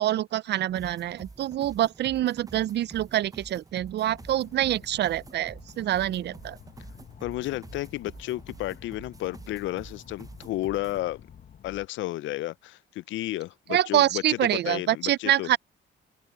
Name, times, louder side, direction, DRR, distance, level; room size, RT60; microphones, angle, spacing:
voice 1, 0.0-6.6 13.7-15.6, right 12 dB, 60° right, 0.4 m, -26 dB
sound 1, 0.7-11.0, right 3 dB, 15° right, 0.7 m, -48 dB
sound 2, 4.0-11.9, left 9 dB, 50° left, 1.1 m, -50 dB
voice 2, 7.2-11.2 11.6-15.5, left 16 dB, 75° left, 0.4 m, -32 dB
open air
cardioid pair, 90°, 20 cm